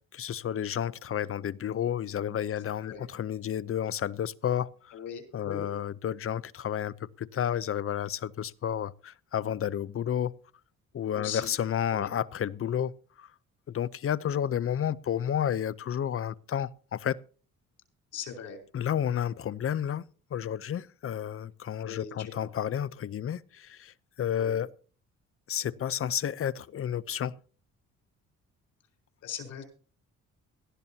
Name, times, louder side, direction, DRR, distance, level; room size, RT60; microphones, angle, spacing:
voice 1, 0.1-4.9 5.3-10.3 10.9-12.9 13.2-13.3 13.7-17.2 18.7-20.0 20.3-24.7 25.5-27.3, left 9 dB, 45° left, 0.7 m, -31 dB
voice 2, 4.9-5.8 11.1-11.5 11.9-12.1 18.1-18.6 21.8-22.5 24.3-24.6 29.2-29.6, left 8 dB, 80° left, 4.7 m, -40 dB
18.0 x 13.5 x 2.8 m
cardioid pair, 90°, 30 cm